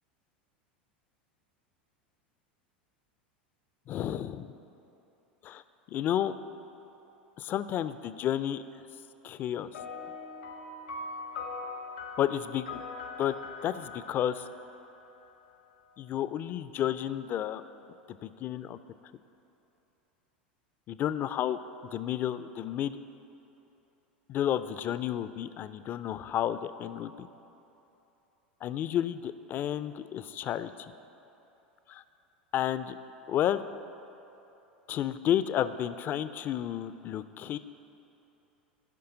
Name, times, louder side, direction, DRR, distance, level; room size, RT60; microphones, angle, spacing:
voice 1, 3.9-4.5 5.4-5.6 5.9-6.3 7.4-8.6 9.2-9.7 12.2-12.8 13.2-13.4 13.6-14.4 16.0-17.6 18.2-18.8 20.9-21.6 21.9-23.0 24.3-27.3 28.6-30.9 31.9-32.0 32.5-32.9 33.3-33.6 34.9-37.6, left 11 dB, 35° left, 13 dB, 0.3 m, -31 dB
sound 1, 9.7-15.5, left 3 dB, 75° left, 0.8 m, -42 dB
15.0 x 5.5 x 3.9 m, 3.0 s
figure-of-eight pair, 85°, 5 cm